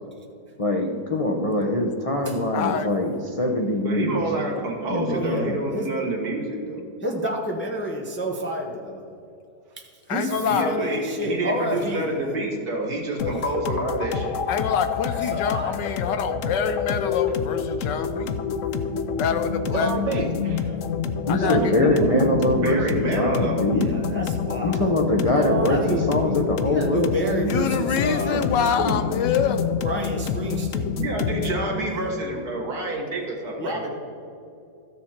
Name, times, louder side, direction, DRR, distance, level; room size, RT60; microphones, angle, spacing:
voice 1, 0.6-4.2 4.9-5.6 21.3-23.9 24.6-27.5 28.3-28.4 28.8-28.9, left 1 dB, 45° left, 0 dB, 0.4 m, -23 dB
voice 2, 2.5-2.9 10.1-10.7 14.5-18.4 19.1-19.9 21.3-21.6 27.5-29.6, left 7 dB, 90° left, 9 dB, 1.4 m, -26 dB
voice 3, 3.8-6.8 10.4-14.4 22.5-23.6 31.0-33.9, right 2 dB, 65° right, 0 dB, 2.2 m, -28 dB
voice 4, 5.1-5.9 7.0-9.0 10.1-10.3 10.6-12.3 15.3-15.7 23.7-24.8 25.6-26.0 26.6-28.4 29.8-31.0 33.6-33.9, equal, 10° left, 1 dB, 0.7 m, -30 dB
voice 5, 10.2-10.9 14.0-14.1 17.3-17.4 18.8-19.2 19.7-20.8 21.4-22.3 25.4-26.0 30.5-30.6, right 4 dB, 85° right, 1 dB, 2.0 m, -29 dB
sound 1, 13.2-31.6, left 6 dB, 65° left, 0.8 m, -28 dB
13.5 x 6.8 x 4.4 m, 2.6 s
omnidirectional pair, 1.8 m